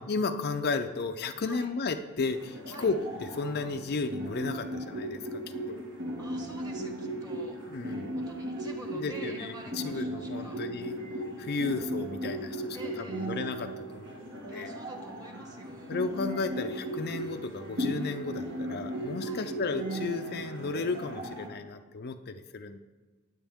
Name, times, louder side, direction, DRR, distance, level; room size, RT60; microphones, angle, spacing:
voice 1, 0.0-5.4 5.7-5.8 7.7-8.1 8.9-11.0 11.4-14.7 15.9-22.8, left 4 dB, 45° left, 7 dB, 0.5 m, -34 dB
sound 1, 2.2-21.5, right 1 dB, 60° right, 1.7 m, -37 dB
voice 2, 6.2-7.6 8.1-10.6 12.7-13.3 14.5-16.0 19.2-19.5, right 2 dB, 20° right, 2 dB, 1.6 m, -48 dB
19.0 x 8.0 x 3.6 m, 1.3 s
head